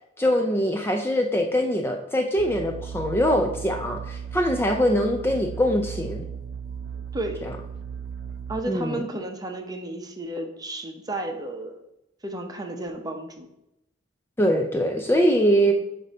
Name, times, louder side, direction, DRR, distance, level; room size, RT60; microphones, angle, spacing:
voice 1, 0.2-6.2 7.4-7.5 8.7-9.0 14.4-15.7, equal, 15° left, 3 dB, 0.4 m, -23 dB
sound 1, 2.4-8.6, right 7 dB, 65° right, 0.4 m, -36 dB
voice 2, 7.1-7.4 8.5-11.8 12.2-13.5 15.7-15.8, right 1 dB, 20° right, 4 dB, 0.7 m, -32 dB
7.5 x 2.7 x 5.2 m, 0.85 s
head